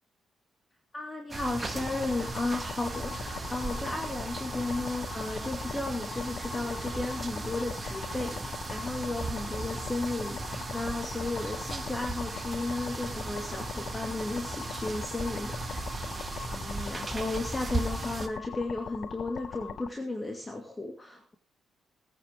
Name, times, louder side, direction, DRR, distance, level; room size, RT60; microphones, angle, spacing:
voice 1, 0.9-15.7 16.5-21.3, left 2 dB, 25° left, 4 dB, 2.5 m, -34 dB
sound 1, 1.3-18.3, right 3 dB, 30° right, 2.4 m, -37 dB
sound 2, 1.7-19.9, left 7 dB, 65° left, 1.3 m, -41 dB
21.0 x 9.3 x 3.6 m, 0.37 s
cardioid pair, 70°, 0 cm